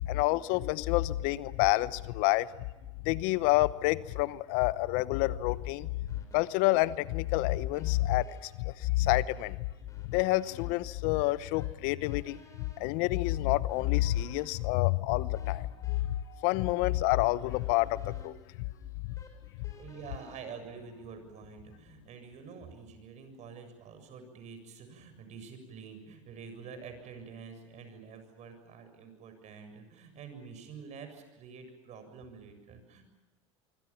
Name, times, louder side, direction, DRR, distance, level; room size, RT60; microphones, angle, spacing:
voice 1, 0.0-2.5 3.0-5.9 6.3-9.6 10.1-12.4 12.8-16.0 16.3-18.4, left 18 dB, 65° left, 17 dB, 0.9 m, -28 dB
sound 1, 6.1-21.3, left 3 dB, 20° left, 6.8 m, -58 dB
voice 2, 19.6-33.0, right 5 dB, 50° right, 8 dB, 7.3 m, -47 dB
26.0 x 24.5 x 7.3 m, 1.1 s
hypercardioid pair, 90°, 16 cm